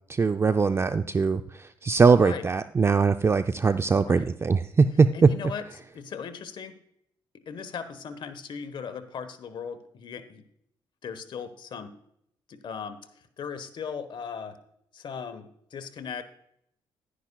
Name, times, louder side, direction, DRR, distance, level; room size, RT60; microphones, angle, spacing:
voice 1, 0.1-5.3, right 4 dB, 25° right, 10 dB, 0.4 m, -21 dB
voice 2, 5.1-6.8 7.5-10.4 11.0-11.9 12.5-14.6 14.9-16.2, left 6 dB, 60° left, 10 dB, 1.1 m, -38 dB
11.0 x 10.0 x 2.3 m, 0.72 s
cardioid pair, 75°, 9 cm